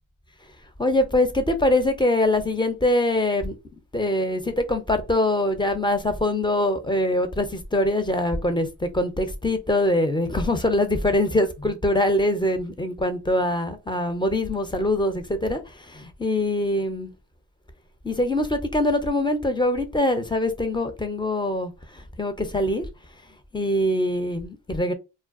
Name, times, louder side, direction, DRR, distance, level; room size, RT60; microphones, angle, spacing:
voice 1, 0.8-3.6 3.9-17.1 18.0-22.8 23.5-24.9, left 1 dB, 10° left, 0.4 m, -23 dB
2.3 x 2.1 x 2.4 m
supercardioid pair, 55°, 47 cm